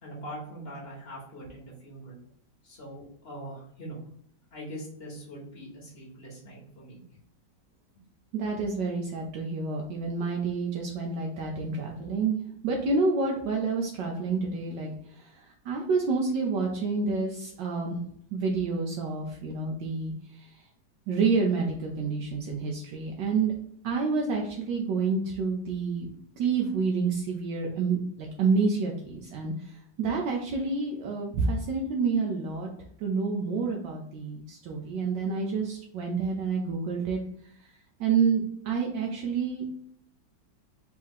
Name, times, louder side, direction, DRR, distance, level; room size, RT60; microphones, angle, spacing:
voice 1, 0.0-2.2 2.6-4.0 4.5-7.0 7.9-8.0, right 1 dB, 35° left, -4 dB, 1.5 m, -42 dB
voice 2, 8.3-12.4 12.6-14.9 15.2-18.0 18.3-20.1 20.4-20.5 21.1-23.5 23.8-26.1 26.4-29.5 30.0-32.7 33.0-37.2 38.0-39.7, right 4 dB, 75° right, 0 dB, 1.3 m, -28 dB
4.6 x 2.8 x 3.6 m, 0.67 s
omnidirectional pair, 2.0 m